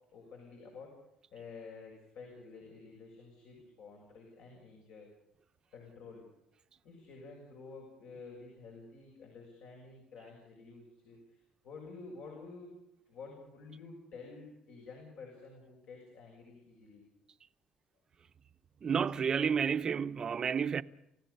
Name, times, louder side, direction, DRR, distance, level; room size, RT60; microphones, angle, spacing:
voice 1, 0.1-0.9 1.3-5.1 5.7-6.2 6.8-12.7 13.1-17.0, left 4 dB, 75° left, 6.9 m, -50 dB
voice 2, 18.8-20.8, right 7 dB, 35° right, 0.7 m, -30 dB
28.5 x 16.0 x 6.9 m
cardioid pair, 135°, 2 cm